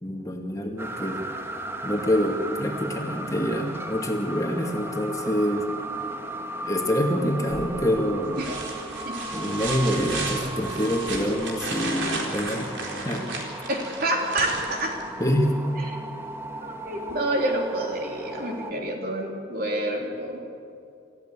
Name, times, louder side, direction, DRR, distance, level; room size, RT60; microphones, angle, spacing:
voice 1, 0.0-1.3 1.8-5.7 6.6-8.4 9.3-12.8 13.0-13.3 15.2-15.6, equal, 20° left, 2 dB, 2.2 m, -26 dB
sound 1, 0.8-18.7, right 2 dB, 15° right, 1.3 m, -36 dB
sound 2, 7.5-7.9 8.3-15.3 17.1-17.2, right 3 dB, 85° right, 4.2 m, -34 dB
voice 2, 13.7-15.0 16.6-20.5, right 1 dB, 55° right, 1 dB, 3.4 m, -28 dB
27.5 x 15.0 x 8.6 m, 2.6 s
head